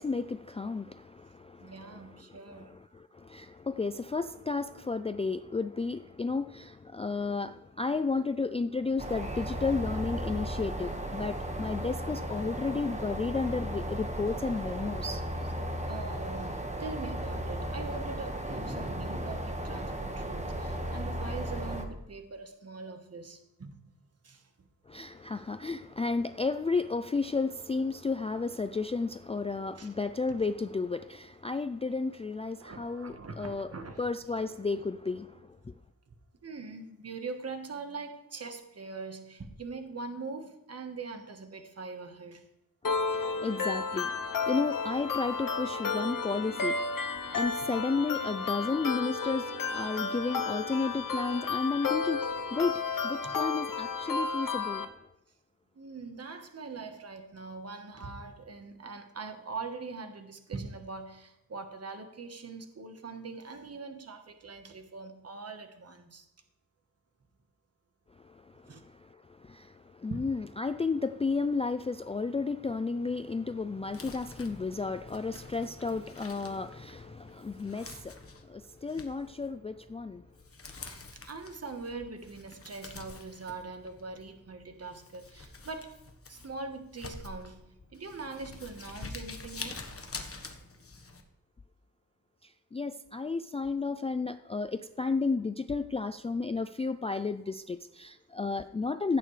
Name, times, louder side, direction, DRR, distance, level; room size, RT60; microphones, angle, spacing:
voice 1, 0.0-2.1 2.6-15.2 24.9-33.7 34.0-35.4 42.9-54.9 69.4-69.7 70.0-80.2 92.7-99.2, left 4 dB, 20° left, 0.3 m, -33 dB
voice 2, 1.6-2.8 15.9-23.8 24.2-24.4 29.8-29.9 32.6-34.0 36.4-42.5 53.2-53.4 55.7-66.3 68.6-68.8 70.1-70.2 81.2-86.0 86.3-89.9, right 4 dB, 45° right, 1.3 m, -42 dB
sound 1, 9.0-21.9, right 1 dB, 20° right, 1.5 m, -35 dB
sound 2, 42.8-54.8, left 4 dB, 65° left, 1.0 m, -32 dB
Crumpling crinkling, 73.8-91.2, left 3 dB, 40° left, 1.3 m, -47 dB
15.5 x 8.9 x 3.3 m
wide cardioid pair, 95°, 35 cm